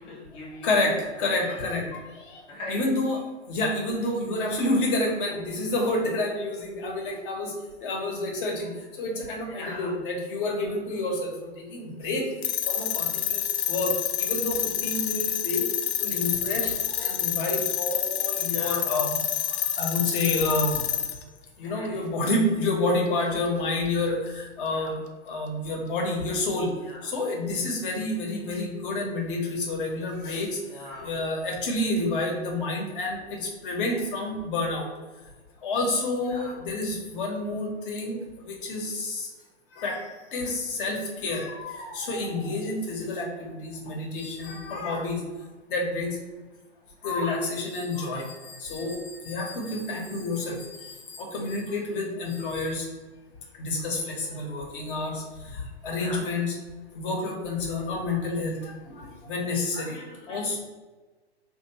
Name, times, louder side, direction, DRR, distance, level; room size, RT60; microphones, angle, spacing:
voice 1, 0.0-1.4 1.7-1.8 2.5-2.8 9.5-9.9 18.5-18.9 21.6-22.1 24.7-25.1 26.8-27.1 30.6-31.1 36.3-36.6 55.9-56.3 59.7-60.6, left 2 dB, 15° left, -4 dB, 0.4 m, -41 dB
voice 2, 0.6-1.8 2.7-3.2 3.5-7.5 7.8-8.7 9.0-11.3 11.7-12.2 12.7-13.4 13.7-13.9 14.2-15.6 16.0-16.7 17.0-19.1 19.8-20.8 21.6-25.0 25.3-26.7 27.1-30.5 31.0-33.2 33.6-34.9 35.6-38.2 38.6-39.2 39.8-40.0 40.3-45.2 45.7-46.1 47.0-48.2 48.6-49.0 49.2-50.6 51.2-52.8 53.6-55.1 55.8-56.5 56.9-58.7 59.3-59.9 60.3-60.6, left 2 dB, 50° left, 1 dB, 1.1 m, -28 dB
sound 1, 12.4-21.2, left 11 dB, 65° left, 0.6 m, -28 dB
3.5 x 2.5 x 2.9 m, 1.2 s
hypercardioid pair, 120°, 34 cm